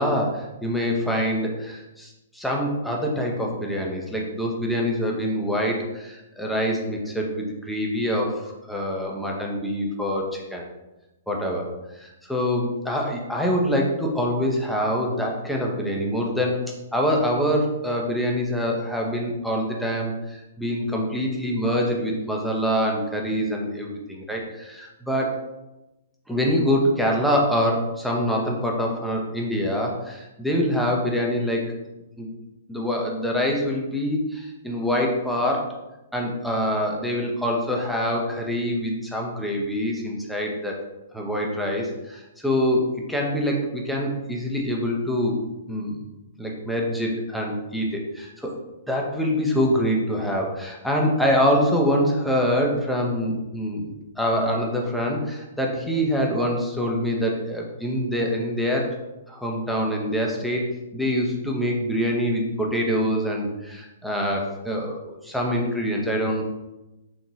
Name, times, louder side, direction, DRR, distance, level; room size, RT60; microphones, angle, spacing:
voice 1, 0.0-10.6 11.3-16.6 16.9-25.4 26.3-31.6 32.2-32.3 32.7-35.7 36.1-40.8 41.1-45.4 45.7-46.1 46.4-48.5 48.9-59.0 59.3-60.6 60.9-66.4, equal, ahead, -2 dB, 0.7 m, -25 dB
4.0 x 3.8 x 2.4 m, 0.99 s
figure-of-eight pair, 110°, 0 cm